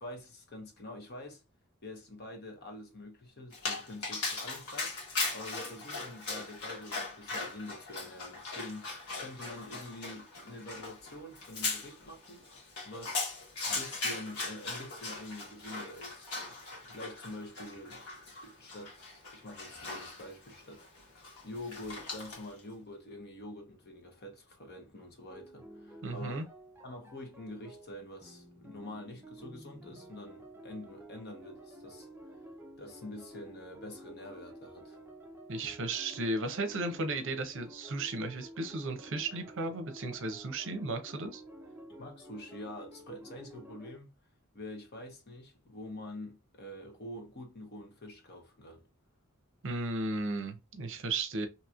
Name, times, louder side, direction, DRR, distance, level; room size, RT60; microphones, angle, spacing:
voice 1, 0.0-1.4 1.8-5.0 5.3-13.3 13.7-26.5 26.8-32.1 32.8-35.0 41.9-44.2 44.5-48.8, left 1 dB, 50° left, 1.0 m, -46 dB
Dog, 3.5-22.6, left 3 dB, 90° left, 1.3 m, -39 dB
sound 1, 25.3-44.0, right 1 dB, 10° right, 0.6 m, -51 dB
voice 2, 26.0-26.5 35.5-41.4 49.6-51.5, right 2 dB, 60° right, 0.7 m, -35 dB
2.9 x 2.9 x 2.4 m
head